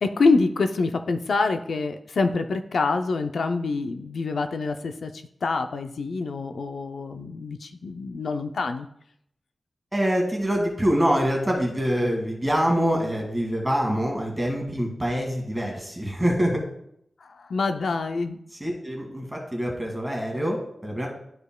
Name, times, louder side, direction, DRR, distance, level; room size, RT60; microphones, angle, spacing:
voice 1, 0.0-8.9 17.2-18.4, left 3 dB, 80° left, 7 dB, 0.4 m, -26 dB
voice 2, 9.9-16.6 18.6-21.1, equal, 5° right, 0 dB, 1.8 m, -25 dB
12.0 x 5.1 x 2.2 m, 0.72 s
wide cardioid pair, 125°, 0 cm